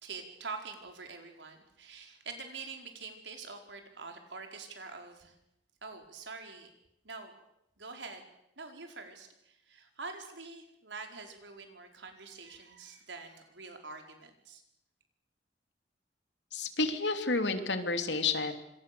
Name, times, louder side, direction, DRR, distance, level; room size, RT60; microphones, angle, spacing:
voice 1, 0.0-5.3 5.8-6.7 7.0-7.3 7.8-8.3 8.6-14.6, right 4 dB, 90° right, 4 dB, 4.7 m, -45 dB
voice 2, 16.5-18.5, left 3 dB, 75° left, 7 dB, 2.9 m, -30 dB
26.5 x 26.0 x 7.0 m, 0.83 s
head